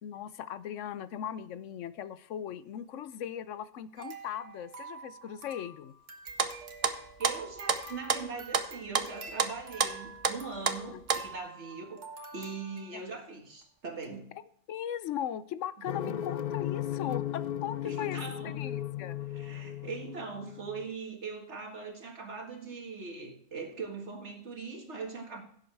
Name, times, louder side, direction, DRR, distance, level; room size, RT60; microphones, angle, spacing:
voice 1, 0.0-5.9 10.9-11.0 12.9-13.0 14.7-18.2 18.4-19.2, left 9 dB, 85° left, 15 dB, 1.0 m, -38 dB
sound 1, 4.0-13.1 13.6-13.7 14.0-14.2, right 4 dB, 85° right, 1.7 m, -47 dB
sound 2, 6.3-8.7 8.9-10.4 10.7-11.3, right 5 dB, 35° right, 0.7 m, -30 dB
voice 2, 7.2-12.0 12.3-14.3 16.0-16.1 17.8-18.6 19.2-25.4, right 4 dB, 65° right, 2 dB, 2.1 m, -41 dB
sound 3, 15.9-20.9, left 11 dB, 60° left, 0.4 m, -36 dB
16.5 x 7.8 x 3.4 m, 0.66 s
omnidirectional pair, 1.2 m